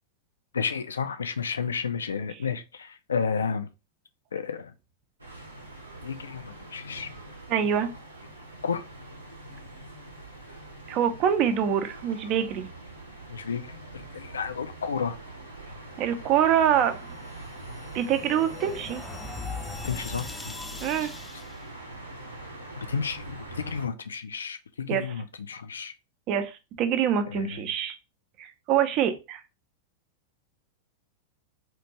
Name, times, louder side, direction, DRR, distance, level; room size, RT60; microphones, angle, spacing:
voice 1, 0.5-3.7 4.3-4.7 6.0-7.1 8.6-8.9 13.3-15.2 19.8-20.5 22.9-25.9 27.3-27.6, left 6 dB, 70° left, 0.4 m, -32 dB
sound 1, 5.2-23.9, right 2 dB, 80° right, 0.8 m, -43 dB
voice 2, 7.5-7.9 10.9-12.7 16.0-17.0 17.9-19.0 20.8-21.1 24.9-25.1 26.3-27.9 28.4-29.4, right 9 dB, 40° right, 0.6 m, -25 dB
sound 2, 17.1-21.6, left 4 dB, 10° left, 0.4 m, -40 dB
4.3 x 2.5 x 2.9 m
figure-of-eight pair, 90°, 0 cm